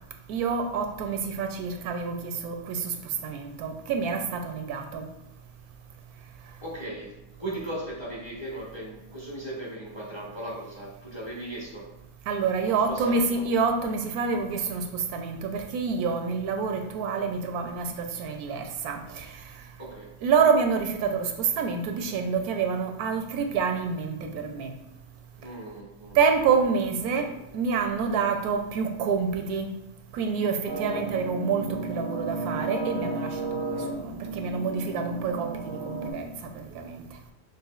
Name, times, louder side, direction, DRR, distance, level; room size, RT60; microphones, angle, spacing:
voice 1, 0.3-2.9 3.2-5.1 12.3-19.3 20.2-24.7 26.1-29.7 30.1-37.0, right 5 dB, 85° right, 4 dB, 1.1 m, -27 dB
voice 2, 6.4-11.9 12.6-13.5 19.8-20.1 25.4-26.2, right 1 dB, 25° left, -4 dB, 0.8 m, -38 dB
sound 1, 30.6-36.1, right 3 dB, 25° right, 0.5 m, -33 dB
6.2 x 2.6 x 2.4 m, 0.95 s
omnidirectional pair, 1.6 m